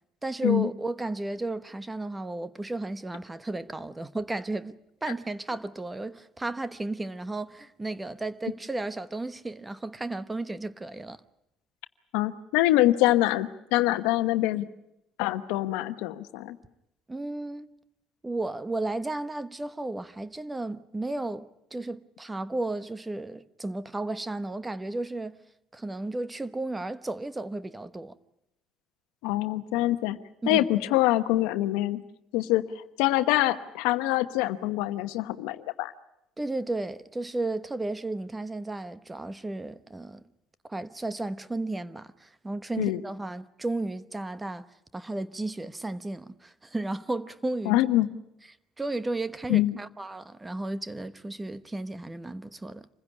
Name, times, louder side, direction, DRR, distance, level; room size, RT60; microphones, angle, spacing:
voice 1, 0.2-11.2 17.1-17.7 18.2-25.4 25.7-28.2 30.4-30.7 36.4-40.2 40.6-44.6 44.9-47.8 48.8-52.9, right 2 dB, 15° right, 1.0 m, -33 dB
voice 2, 12.1-14.7 15.2-16.6 29.2-30.2 30.5-32.0 32.3-32.7 33.0-35.9 42.8-43.0 47.6-48.1 49.5-49.8, left 16 dB, 85° left, 1.0 m, -25 dB
26.0 x 15.5 x 9.8 m
supercardioid pair, 80°, 0 cm